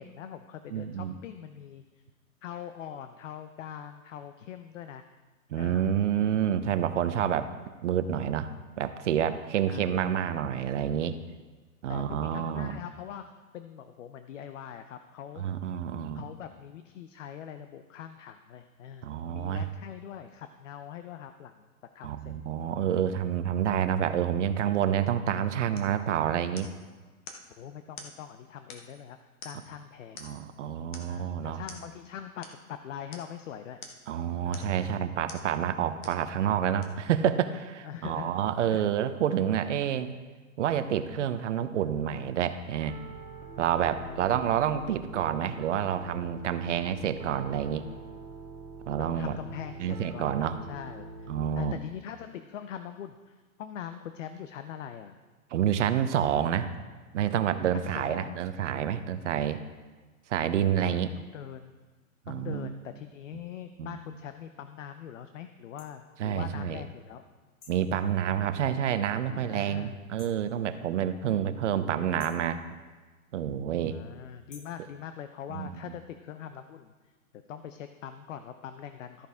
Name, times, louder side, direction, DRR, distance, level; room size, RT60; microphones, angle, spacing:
voice 1, 0.0-1.8 2.4-5.0 5.5-6.0 9.7-10.1 11.9-15.4 16.1-21.7 21.9-22.3 27.6-29.2 29.4-30.3 31.1-33.8 34.4-35.2 37.8-38.3 38.7-38.9 43.9-44.4 49.0-51.3 51.6-55.2 57.7-58.4 60.8-61.7 62.3-67.3 69.3-70.0 71.7-72.4 73.9-77.1 77.5-79.3, left 9 dB, 55° left, 9 dB, 0.7 m, -43 dB
voice 2, 0.7-1.1 5.5-7.5 7.8-8.5 8.8-11.1 11.8-12.8 15.4-16.2 19.0-19.7 22.0-26.7 30.2-31.6 34.1-40.1 40.6-43.0 43.6-47.8 48.9-49.4 49.8-50.6 51.3-51.8 55.5-56.7 57.1-59.6 60.3-61.1 62.3-62.7 63.8-64.0 66.2-66.8 67.7-72.6 73.3-74.0 75.5-75.7, right 9 dB, 55° right, 11 dB, 0.8 m, -28 dB
sound 1, 25.7-26.0 26.6-26.8 27.3-27.5 28.0-28.2 28.7-29.0 29.4-29.8 30.2-30.5 30.9-31.2 31.7-31.9 32.4-32.6 33.1-33.3 33.8-34.1 34.5-34.8 35.3-35.5 36.0-36.2 36.8-36.9, left 4 dB, 30° left, 1.1 m, -46 dB
Piano, 42.9-51.5, right 3 dB, 35° right, 1.1 m, -44 dB
sound 2, 65.8-65.9 67.6-67.9 70.2-70.5 72.2-72.5 74.5-74.8, left 5 dB, 85° left, 1.8 m, -52 dB
13.5 x 9.3 x 3.5 m, 1.3 s
hypercardioid pair, 160°, 44 cm